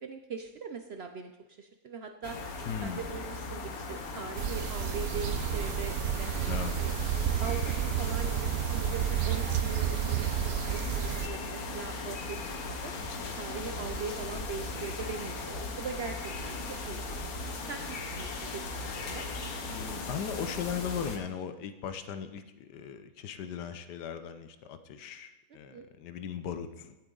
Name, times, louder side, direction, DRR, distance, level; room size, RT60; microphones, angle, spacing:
voice 1, 0.0-1.3 1.6-2.4 2.8-6.3 6.8-6.9 7.4-12.9 13.4-17.2 17.7-19.2 25.7-25.9, right 5 dB, 60° right, 6 dB, 0.6 m, -41 dB
sound 1, 2.2-21.2, left 3 dB, 65° left, 1.5 m, -38 dB
voice 2, 2.7-3.0 6.5-6.7 13.0-13.3 18.9-19.0 19.7-27.0, left 8 dB, 90° left, 10 dB, 1.4 m, -38 dB
sound 2, 4.4-11.3, right 11 dB, 80° right, 1.2 m, -31 dB
17.0 x 7.5 x 3.9 m, 1.0 s
omnidirectional pair, 1.7 m